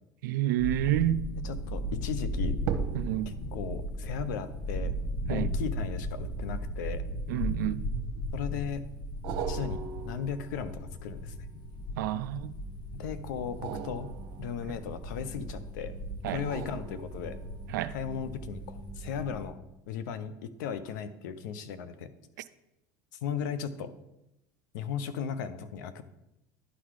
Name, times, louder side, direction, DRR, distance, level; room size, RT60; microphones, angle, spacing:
voice 1, 0.2-1.2 2.9-3.3 5.3-5.5 7.3-7.8 12.0-12.6 16.2-16.5 17.7-17.9, right 14 dB, 80° right, 0.4 m, -29 dB
sound 1, 0.6-19.5, equal, 50° left, 1.1 m, -36 dB
voice 2, 1.4-2.6 3.3-4.9 5.3-7.0 8.3-8.8 9.5-9.8 10.0-11.4 12.9-14.1 14.4-15.9 16.3-17.4 17.9-19.6 19.9-20.3 20.6-22.1 23.2-23.9 24.7-26.0, left 7 dB, 80° left, 0.7 m, -36 dB
sound 2, 1.4-1.7 2.6-7.2 7.9-8.6 9.2-12.2 13.4-15.5 16.2-17.7 18.1-18.2, right 8 dB, 65° right, 0.9 m, -41 dB
sound 3, 10.4-19.4, right 3 dB, 25° right, 0.9 m, -49 dB
11.0 x 4.1 x 4.8 m
hypercardioid pair, 90°, 10 cm